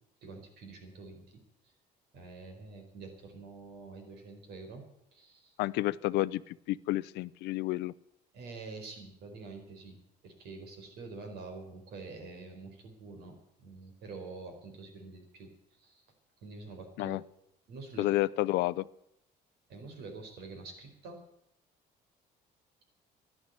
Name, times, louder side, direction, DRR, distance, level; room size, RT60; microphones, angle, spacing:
voice 1, 0.2-1.7 2.1-4.8 5.1-5.6 8.3-10.0 10.2-16.1 16.4-17.2 17.7-18.1 19.7-21.2, right 3 dB, 75° right, 4 dB, 4.5 m, -47 dB
voice 2, 5.6-7.9 17.0-17.2 18.0-18.8, left 17 dB, 85° left, 17 dB, 0.5 m, -30 dB
11.5 x 11.5 x 9.7 m, 0.77 s
cardioid pair, 110°, 17 cm